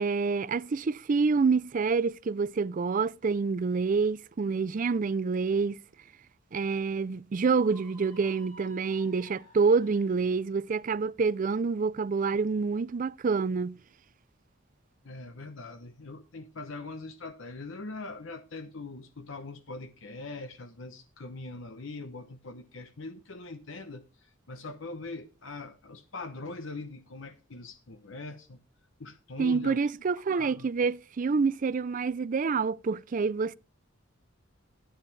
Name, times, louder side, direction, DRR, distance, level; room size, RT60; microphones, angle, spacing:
voice 1, 0.0-5.8 6.5-13.8 29.4-33.5, right 4 dB, 40° right, 0.4 m, -27 dB
Screaming, 7.4-10.4, right 1 dB, 45° left, 4.2 m, -54 dB
voice 2, 15.0-28.6 29.0-29.8 30.3-30.7, left 3 dB, 65° left, 0.9 m, -42 dB
12.5 x 8.8 x 3.3 m
head